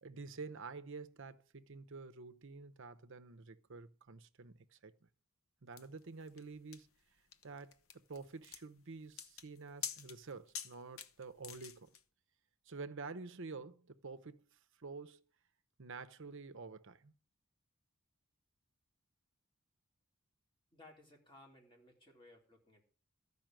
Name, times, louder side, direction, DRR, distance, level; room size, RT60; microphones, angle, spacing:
voice 1, 0.0-5.1 5.6-6.9 7.4-12.0 12.7-15.2 15.8-17.1, right 4 dB, 60° right, 0.8 m, -49 dB
sound 1, 5.8-12.0, left 8 dB, 65° left, 0.9 m, -48 dB
voice 2, 20.7-22.8, left 2 dB, 20° left, 3.3 m, -60 dB
14.0 x 5.6 x 8.9 m
head